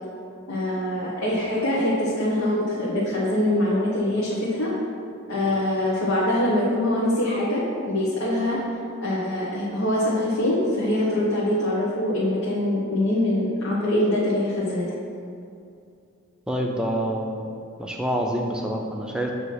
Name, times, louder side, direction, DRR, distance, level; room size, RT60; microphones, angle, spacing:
voice 1, 0.5-4.7 5.3-8.6 9.0-14.8, left 1 dB, 90° left, -7 dB, 1.2 m, -23 dB
voice 2, 16.5-17.5 17.8-19.3, equal, 5° right, 0 dB, 0.5 m, -27 dB
7.9 x 2.9 x 5.8 m, 2.4 s
head